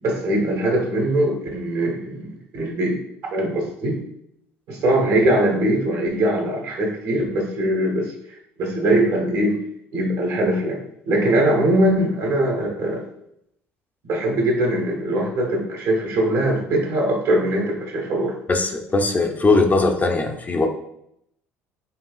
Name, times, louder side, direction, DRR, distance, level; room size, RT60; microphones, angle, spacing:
voice 1, 0.0-3.0 3.3-4.0 4.7-9.6 9.9-13.0 14.0-18.4, right 1 dB, 60° right, 0 dB, 1.2 m, -21 dB
voice 2, 18.5-20.7, left 3 dB, 25° left, 3 dB, 0.6 m, -19 dB
5.5 x 2.4 x 2.4 m, 0.75 s
hypercardioid pair, 65°, 7 cm